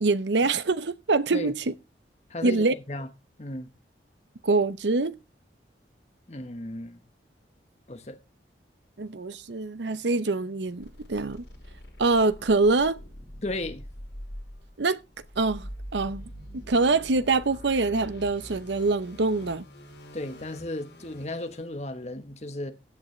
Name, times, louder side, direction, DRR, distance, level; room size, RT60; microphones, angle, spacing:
voice 1, 0.0-1.7 2.4-2.7 4.4-5.2 9.0-11.4 12.0-13.0 14.8-15.0 15.4-19.6, right 3 dB, 80° right, 0.8 m, -25 dB
voice 2, 2.3-3.1 3.4-3.7 6.3-7.0 7.9-8.2 13.4-13.9 20.1-22.7, left 1 dB, 35° left, 1.1 m, -35 dB
sound 1, 10.8-21.6, equal, 80° left, 5.9 m, -44 dB
15.5 x 8.3 x 3.2 m
head